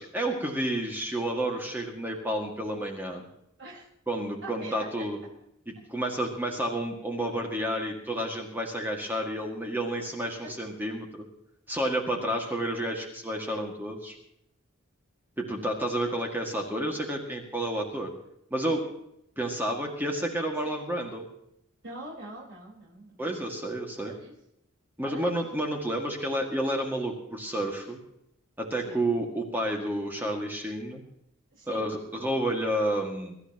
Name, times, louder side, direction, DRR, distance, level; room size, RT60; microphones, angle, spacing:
voice 1, 0.0-3.2 4.1-5.2 5.7-11.3 11.7-14.2 15.4-18.1 18.5-18.8 19.4-21.3 23.2-24.1 25.0-28.0 28.6-31.0 31.7-33.3, right 1 dB, 10° right, 1 dB, 2.0 m, -30 dB
voice 2, 4.4-5.0 10.4-10.6 20.6-20.8 21.8-23.3 23.9-24.3 25.0-25.4 28.8-29.0 31.5-31.9, right 2 dB, 60° right, -5 dB, 4.5 m, -44 dB
23.5 x 13.0 x 3.0 m, 0.77 s
head